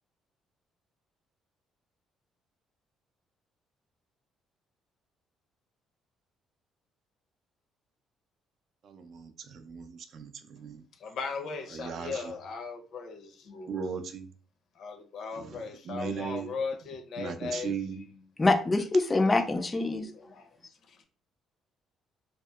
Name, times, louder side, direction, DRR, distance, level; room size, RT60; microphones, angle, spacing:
voice 1, 8.8-10.8 11.7-12.4 13.7-14.3 15.3-16.5 17.2-18.1, right 6 dB, 65° right, 7 dB, 0.4 m, -38 dB
voice 2, 11.0-13.8 14.8-18.1 19.6-19.7 20.0-20.5 20.9-21.1, left 4 dB, 65° left, 4 dB, 0.6 m, -38 dB
voice 3, 18.4-20.1, left 2 dB, 25° left, 7 dB, 0.3 m, -25 dB
2.7 x 2.0 x 2.3 m, 0.42 s
supercardioid pair, 75°, 0 cm